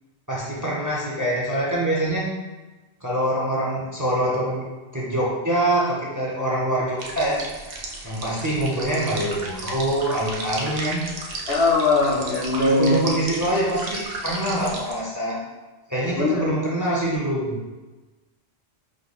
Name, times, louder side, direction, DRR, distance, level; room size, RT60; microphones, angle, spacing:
voice 1, 0.3-2.3 3.0-4.7 4.9-7.4 8.0-11.0 12.6-15.4 15.9-17.7, right 1 dB, 20° right, -5 dB, 0.7 m, -24 dB
sound 1, 7.0-15.0, right 2 dB, 65° right, 0.9 m, -34 dB
voice 2, 11.5-13.0 16.2-16.6, left 3 dB, 70° left, -2 dB, 1.0 m, -20 dB
5.0 x 2.2 x 4.0 m, 1.2 s
omnidirectional pair, 1.1 m